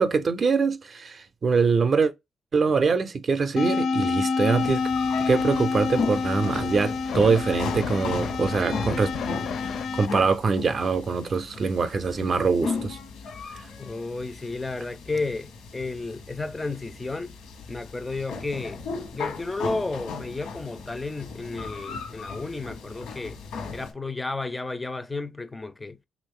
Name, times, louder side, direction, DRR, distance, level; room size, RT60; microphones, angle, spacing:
voice 1, 0.0-2.1 2.5-4.8 5.3-9.1 9.9-13.0, right 5 dB, 45° right, 0.5 m, -23 dB
sound 1, 3.6-10.1, left 4 dB, 65° left, 0.5 m, -28 dB
sound 2, 4.5-23.9, left 4 dB, 85° left, 1.0 m, -36 dB
voice 2, 13.8-17.4 17.7-18.8 19.1-23.4 23.7-26.0, left 3 dB, 15° left, 0.4 m, -32 dB
3.1 x 2.5 x 3.5 m
cardioid pair, 90°, 0 cm